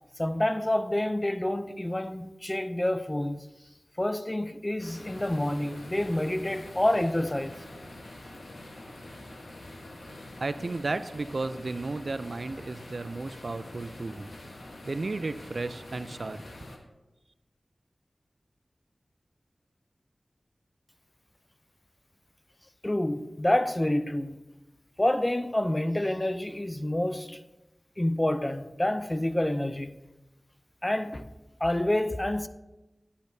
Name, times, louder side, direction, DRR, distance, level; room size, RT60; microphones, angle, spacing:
voice 1, 0.2-3.5 4.0-7.6 22.8-24.4 25.0-27.4 28.0-29.9 30.8-31.2 31.6-32.5, left 1 dB, 20° left, 0.5 m, -28 dB
sound 1, 4.8-16.8, left 1 dB, 85° left, 1.2 m, -45 dB
voice 2, 10.4-14.3 14.9-16.4, right 3 dB, 65° right, 0.4 m, -33 dB
10.5 x 8.4 x 2.7 m
wide cardioid pair, 55°, 0 cm